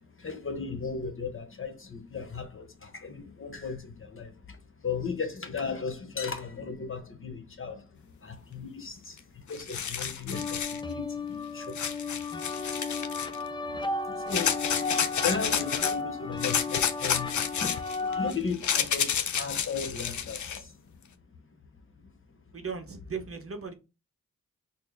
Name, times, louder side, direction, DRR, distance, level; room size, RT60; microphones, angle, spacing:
voice 1, 0.0-12.2 12.5-12.8 13.2-20.8 21.3-21.4 22.0-22.1 22.5-22.6, left 5 dB, 40° left, 0.9 m, -37 dB
sound 1, 9.2-9.3 9.5-10.8 11.7-13.4 14.3-15.9 16.4-20.6, left 8 dB, 60° left, 0.5 m, -30 dB
sound 2, 10.3-18.3, left 3 dB, 15° left, 0.4 m, -34 dB
voice 2, 13.2-13.6 14.7-14.9 15.8-16.0 18.0-18.4 22.5-23.7, right 5 dB, 40° right, 0.8 m, -39 dB
4.2 x 2.0 x 3.4 m
cardioid pair, 55°, 33 cm